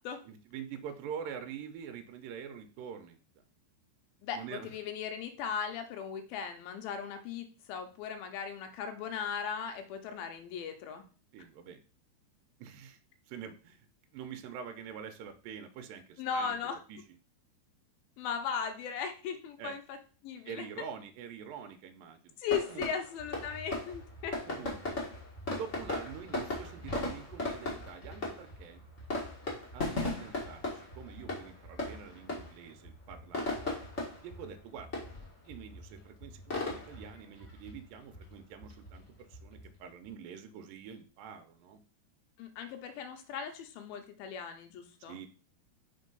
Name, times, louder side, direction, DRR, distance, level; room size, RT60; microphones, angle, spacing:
voice 1, 0.2-3.2 4.3-4.7 11.3-11.8 12.6-13.0 13.3-13.9 14.1-16.6 16.9-17.0 19.6-19.8 20.5-22.3 22.7-22.9 24.5-25.0 25.6-28.8 29.7-33.7 34.2-34.9 35.5-41.8 45.1-45.3, right 7 dB, 80° right, 6 dB, 2.1 m, -45 dB
voice 2, 4.2-11.0 16.2-16.8 18.2-20.0 20.2-20.7 22.4-24.4 42.4-45.2, left 7 dB, 75° left, 6 dB, 2.4 m, -37 dB
sound 1, 22.5-40.1, left 2 dB, 50° left, 0.8 m, -39 dB
5.4 x 3.9 x 5.3 m, 0.38 s
omnidirectional pair, 4.6 m